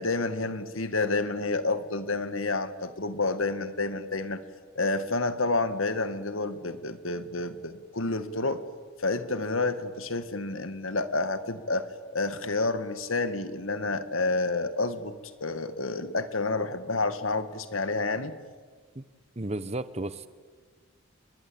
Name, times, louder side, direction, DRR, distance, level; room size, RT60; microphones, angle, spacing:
voice 1, 0.0-4.4 4.8-8.6 9.0-11.9 12.1-15.1 15.4-18.3, left 3 dB, 85° left, 11 dB, 2.0 m, -29 dB
voice 2, 19.4-20.3, right 2 dB, 30° right, 14 dB, 1.1 m, -33 dB
30.0 x 21.5 x 8.8 m, 1.5 s
head